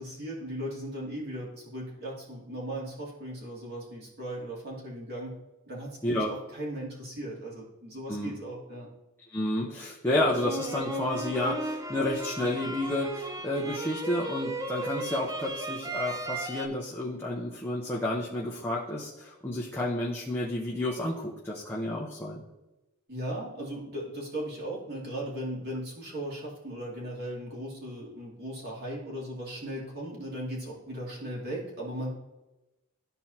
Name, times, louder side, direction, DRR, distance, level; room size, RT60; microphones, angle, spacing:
voice 1, 0.0-5.3 5.7-8.9 23.1-32.1, right 1 dB, 45° right, -5 dB, 2.7 m, -37 dB
voice 2, 9.3-22.4, left 1 dB, 10° left, -4 dB, 0.9 m, -30 dB
sound 1, 10.3-16.7, right 1 dB, 15° right, 0.6 m, -35 dB
13.5 x 4.6 x 2.9 m, 1.0 s
head